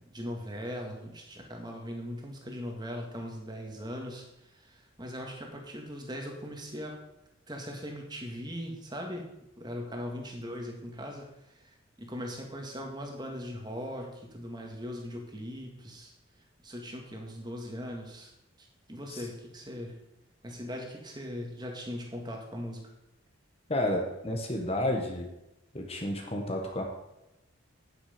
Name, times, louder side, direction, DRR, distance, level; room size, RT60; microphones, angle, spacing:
voice 1, 0.0-7.0 7.5-9.3 9.6-16.1 16.6-18.3 18.6-20.0 20.4-22.9, equal, 20° right, 2 dB, 1.9 m, -40 dB
voice 2, 23.7-25.3 25.7-26.8, left 1 dB, 30° left, 2 dB, 1.4 m, -31 dB
9.6 x 9.4 x 5.2 m, 0.89 s
head